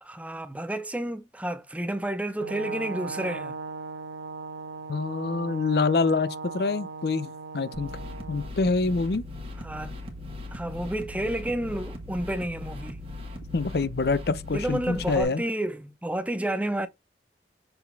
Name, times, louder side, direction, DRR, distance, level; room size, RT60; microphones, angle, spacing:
voice 1, 0.0-3.5 9.6-10.0 10.5-13.0 14.5-16.9, right 1 dB, 10° right, 0.6 m, -31 dB
Brass instrument, 2.4-8.5, right 4 dB, 80° right, 0.9 m, -38 dB
voice 2, 4.9-7.9 8.3-9.2 13.5-15.4, left 3 dB, 60° left, 0.5 m, -26 dB
sound 1, 7.7-15.2, left 2 dB, 30° right, 1.7 m, -39 dB
6.9 x 4.0 x 3.4 m
head